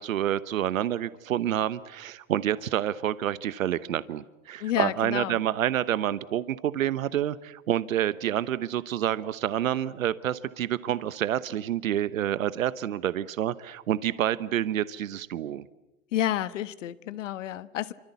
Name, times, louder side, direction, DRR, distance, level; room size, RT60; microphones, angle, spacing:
voice 1, 0.0-15.6, right 11 dB, 80° right, 15 dB, 1.1 m, -28 dB
voice 2, 4.6-5.4 16.1-17.9, left 12 dB, 65° left, 14 dB, 1.5 m, -30 dB
28.0 x 25.0 x 8.3 m, 0.99 s
hypercardioid pair, 120°, 40 cm